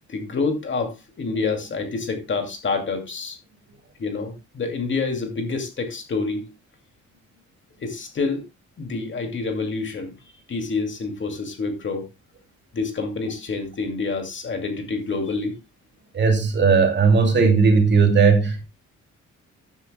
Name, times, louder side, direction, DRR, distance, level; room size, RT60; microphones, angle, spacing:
voice 1, 0.1-3.4 4.0-6.5 7.8-8.4 8.8-10.1 10.5-12.1 12.7-15.6, left 4 dB, 40° left, 2.5 m, -27 dB
voice 2, 16.1-18.6, right 5 dB, 35° right, 2.7 m, -17 dB
14.0 x 9.9 x 2.2 m
cardioid pair, 150°, 30 cm